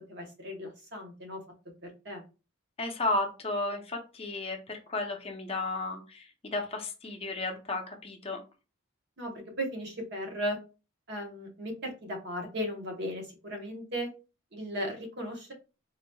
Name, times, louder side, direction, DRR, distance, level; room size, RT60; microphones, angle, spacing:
voice 1, 0.1-1.4 1.8-2.2 9.2-9.3 9.6-10.6 11.1-14.1 14.5-15.5, equal, 55° right, 2 dB, 0.9 m, -36 dB
voice 2, 2.8-8.4, left 2 dB, 30° left, 2 dB, 0.6 m, -33 dB
3.9 x 2.9 x 2.2 m, 0.32 s
head